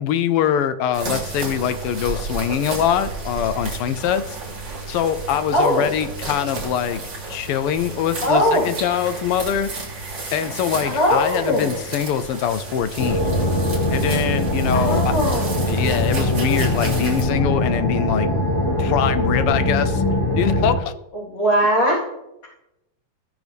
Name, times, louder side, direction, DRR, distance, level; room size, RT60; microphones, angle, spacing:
voice 1, 0.0-4.4 4.9-7.0 7.3-9.7 10.3-13.4 13.9-15.1 15.7-18.3 18.8-20.0 20.3-20.9, left 9 dB, 85° left, 12 dB, 1.6 m, -23 dB
sound 1, 0.9-17.2, right 3 dB, 55° right, 3.4 m, -32 dB
voice 2, 5.5-6.0 8.2-8.7 10.8-11.8 14.7-15.5 21.2-22.0, equal, 55° left, -6 dB, 4.5 m, -20 dB
sound 2, 13.0-20.8, left 1 dB, 15° left, 3.1 m, -21 dB
16.5 x 6.5 x 3.5 m, 0.89 s
omnidirectional pair, 2.4 m